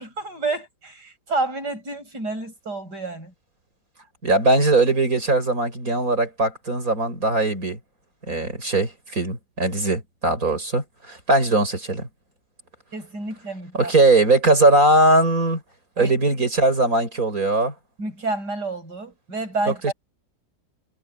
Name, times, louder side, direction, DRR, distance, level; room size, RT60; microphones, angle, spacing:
voice 1, 0.0-3.3 12.9-13.9 16.0-16.1 18.0-19.9, right 3 dB, 80° right, 8.0 m, -29 dB
voice 2, 4.2-7.8 8.3-12.1 13.7-15.6 16.0-17.7 19.7-19.9, right 2 dB, 55° right, 6.2 m, -20 dB
omnidirectional pair, 1.8 m